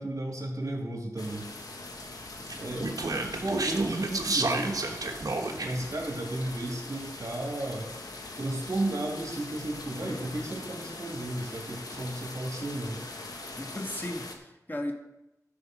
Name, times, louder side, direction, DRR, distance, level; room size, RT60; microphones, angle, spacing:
voice 1, 0.0-1.5 2.5-2.9 3.2-5.0 5.6-7.9 8.4-13.0, right 1 dB, 60° right, 0 dB, 2.7 m, -33 dB
sound 1, 1.2-14.3, left 2 dB, 80° left, 1.4 m, -42 dB
Speech, 2.5-5.9, right 2 dB, 75° right, 1.2 m, -31 dB
voice 2, 2.7-3.2 13.6-14.9, left 1 dB, 30° left, 3 dB, 1.6 m, -37 dB
12.0 x 5.5 x 6.3 m, 0.92 s
wide cardioid pair, 50°, 6 cm